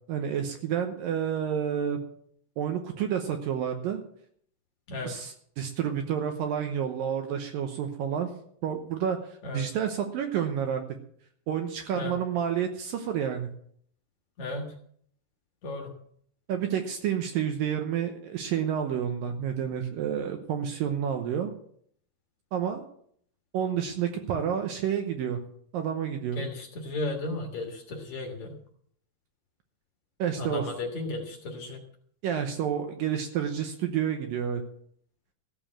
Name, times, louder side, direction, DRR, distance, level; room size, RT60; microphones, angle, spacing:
voice 1, 0.1-2.0 2.6-4.0 5.0-8.3 8.6-9.2 9.5-10.8 11.5-13.5 16.5-21.5 22.5-22.8 23.5-25.4 25.7-26.4 30.2-30.7 32.2-34.6, right 8 dB, 70° right, 6 dB, 2.3 m, -29 dB
voice 2, 14.4-14.7 15.6-15.9 26.4-28.5 30.4-31.8, left 2 dB, 55° left, 2 dB, 2.4 m, -34 dB
14.5 x 7.0 x 7.4 m, 0.64 s
omnidirectional pair, 4.7 m